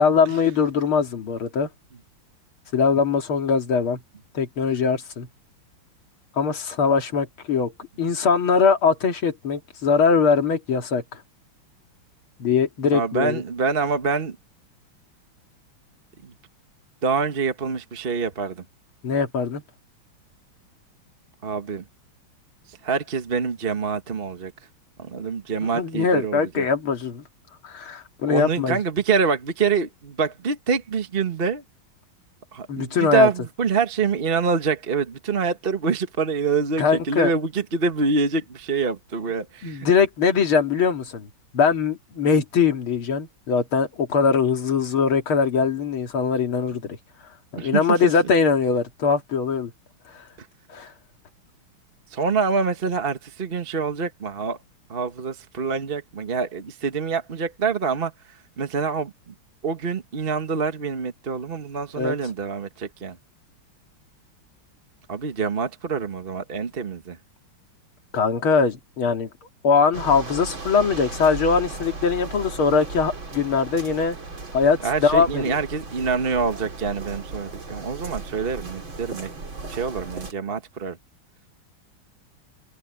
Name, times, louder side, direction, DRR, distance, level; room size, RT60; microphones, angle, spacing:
voice 1, 0.0-1.7 2.7-4.0 4.3-5.3 6.4-7.7 8.0-11.2 12.4-13.4 19.0-19.6 25.7-27.2 27.6-28.8 32.7-33.3 36.8-37.3 39.6-41.3 41.5-47.0 47.5-49.7 50.1-50.3 50.7-50.9 61.9-62.2 68.1-69.3 69.6-74.2 74.5-75.6, left 5 dB, 80° left, 3.1 m, -21 dB
voice 2, 12.9-14.4 16.2-16.3 17.0-18.6 21.4-21.8 22.7-24.5 25.0-26.7 28.3-31.6 32.5-39.9 47.6-48.1 50.4-50.5 52.1-54.6 54.9-59.3 59.6-63.2 65.1-67.2 74.8-79.3 79.7-81.0, right 5 dB, 30° right, 1.3 m, -26 dB
sound 1, 69.9-80.3, right 3 dB, 65° right, 4.7 m, -36 dB
omnidirectional pair, 2.3 m